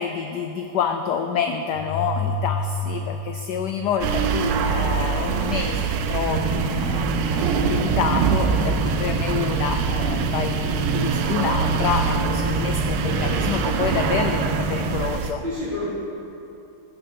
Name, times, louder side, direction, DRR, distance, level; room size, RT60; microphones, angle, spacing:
voice 1, 0.0-15.4, left 7 dB, 75° left, 6 dB, 0.9 m, -28 dB
sound 1, 1.7-4.6, left 2 dB, 40° right, 2.1 m, -29 dB
sound 2, 4.0-15.3, right 6 dB, 70° right, 1.2 m, -24 dB
sound 3, 6.2-15.0, equal, 5° right, 0.5 m, -29 dB
voice 2, 13.0-13.5 15.4-15.9, left 1 dB, 25° right, -12 dB, 2.6 m, -30 dB
15.5 x 6.4 x 6.8 m, 2.8 s
omnidirectional pair, 2.3 m